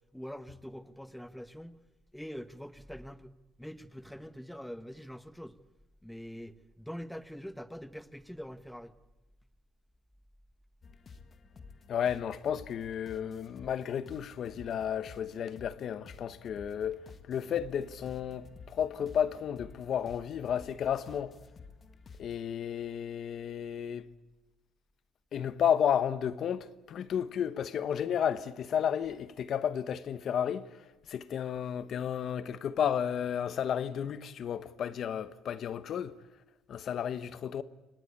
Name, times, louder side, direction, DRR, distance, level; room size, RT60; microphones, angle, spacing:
voice 1, 0.1-1.8 2.1-3.3 3.6-5.5 6.0-8.9, equal, ahead, 1.1 m, -44 dB
sound 1, 10.8-22.4, left 4 dB, 30° left, 1.7 m, -52 dB
voice 2, 11.9-17.0 17.3-21.3 22.2-24.1 25.3-30.7 31.1-36.1 36.7-37.6, left 8 dB, 50° left, 1.0 m, -32 dB
26.0 x 19.5 x 8.2 m
cardioid pair, 145°, 0 cm